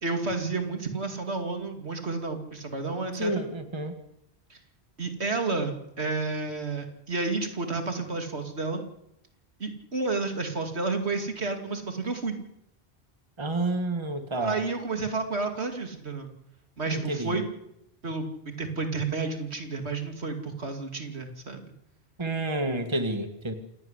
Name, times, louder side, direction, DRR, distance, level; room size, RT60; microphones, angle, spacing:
voice 1, 0.0-3.4 4.5-4.6 5.0-8.8 9.6-12.4 14.4-16.3 16.8-17.4 18.0-21.6, right 3 dB, 75° right, 5 dB, 2.8 m, -31 dB
voice 2, 3.2-3.9 13.4-14.6 16.9-17.4 22.2-23.5, right 2 dB, 25° right, 8 dB, 1.8 m, -29 dB
28.0 x 12.0 x 9.9 m, 0.81 s
omnidirectional pair, 1.1 m